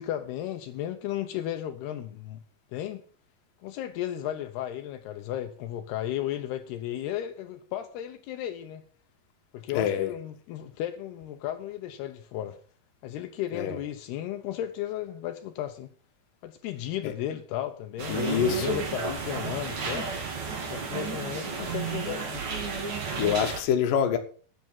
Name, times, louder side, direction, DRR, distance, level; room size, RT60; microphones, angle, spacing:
voice 1, 0.0-2.4 2.7-3.0 3.6-8.8 9.5-12.6 13.0-15.9 16.4-20.1 20.7-22.4, left 12 dB, 80° left, 2.9 m, -34 dB
voice 2, 9.7-10.1 13.5-13.8 17.0-17.1 18.1-18.8 21.5-21.7 23.2-24.2, left 8 dB, 65° left, 2.8 m, -26 dB
sound 1, 18.0-23.6, right 5 dB, 50° right, 3.5 m, -32 dB
9.3 x 9.2 x 7.2 m
omnidirectional pair, 4.7 m